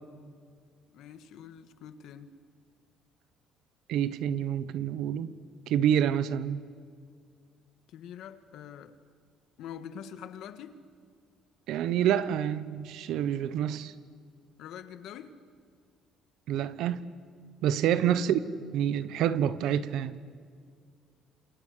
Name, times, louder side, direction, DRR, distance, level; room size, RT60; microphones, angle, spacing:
voice 1, 0.9-2.4 7.9-9.0 9.6-10.8 14.6-15.4 17.8-18.2, left 8 dB, 60° left, 10 dB, 1.6 m, -45 dB
voice 2, 3.9-5.3 5.7-6.6 11.7-13.9 16.5-17.1 17.6-18.4 18.7-20.2, right 10 dB, 65° right, 15 dB, 1.1 m, -27 dB
29.5 x 27.5 x 6.8 m, 2.1 s
cardioid pair, 175°, 0 cm